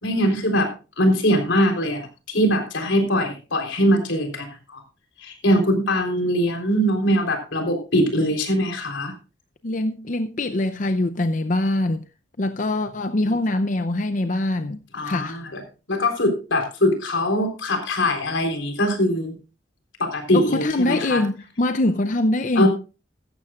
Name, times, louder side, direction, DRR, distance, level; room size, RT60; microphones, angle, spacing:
voice 1, 0.0-0.7 1.0-4.5 4.7-4.8 5.2-9.1 14.9-15.6 15.9-19.3 20.0-21.2 22.6-22.7, equal, 85° left, 3.8 m, -22 dB
voice 2, 9.6-12.0 12.4-15.4 20.3-22.7, left 1 dB, 40° left, 0.6 m, -23 dB
15.5 x 13.0 x 2.4 m
head